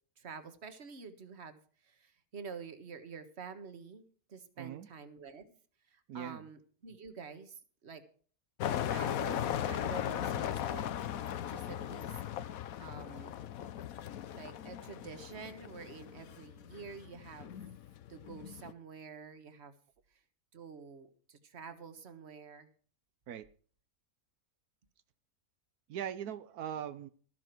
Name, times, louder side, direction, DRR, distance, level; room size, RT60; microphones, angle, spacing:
voice 1, 0.2-5.5 5.9-8.0 8.8-10.9 11.5-12.2 12.8-13.3 14.3-17.5 18.1-19.7 20.5-22.7, right 5 dB, 45° right, 9 dB, 1.7 m, -48 dB
voice 2, 4.6-4.9 6.1-6.5 23.3-23.5 25.9-27.1, right 9 dB, 90° right, 12 dB, 1.3 m, -40 dB
sound 1, 8.6-18.7, left 10 dB, 70° left, 1.2 m, -38 dB
13.5 x 12.0 x 4.6 m, 0.43 s
omnidirectional pair, 1.5 m